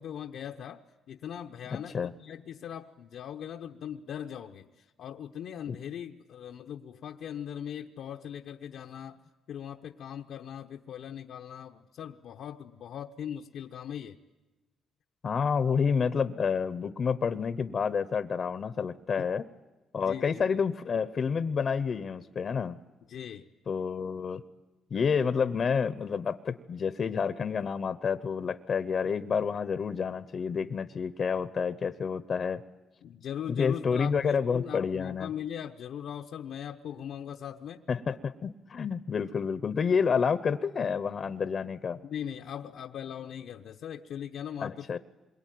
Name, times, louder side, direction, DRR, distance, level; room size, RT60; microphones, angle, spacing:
voice 1, 0.0-9.2 9.5-14.2 19.2-19.3 20.0-20.5 23.1-23.5 33.0-37.8 42.0-45.0, left 9 dB, 75° left, 3 dB, 0.9 m, -40 dB
voice 2, 1.7-2.1 5.7-5.8 15.2-19.4 19.9-22.8 23.7-24.4 24.9-32.6 33.5-35.3 37.9-42.0 44.6-45.0, left 6 dB, 50° left, 12 dB, 0.9 m, -29 dB
27.0 x 22.5 x 9.3 m, 1.1 s
cardioid pair, 90°, 0 cm